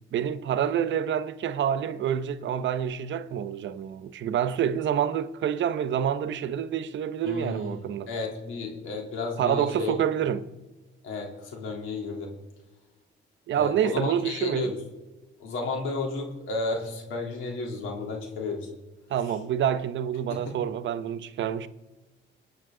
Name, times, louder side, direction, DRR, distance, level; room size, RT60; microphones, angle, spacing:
voice 1, 0.1-8.1 9.4-10.5 13.5-14.7 19.1-21.7, right 9 dB, 70° right, 0.9 m, -27 dB
voice 2, 7.2-7.8 8.1-9.9 11.0-12.3 13.5-14.8 15.4-18.7 20.3-20.4, left 3 dB, 85° left, 3.4 m, -32 dB
24.0 x 8.9 x 3.8 m
cardioid pair, 90°, 20 cm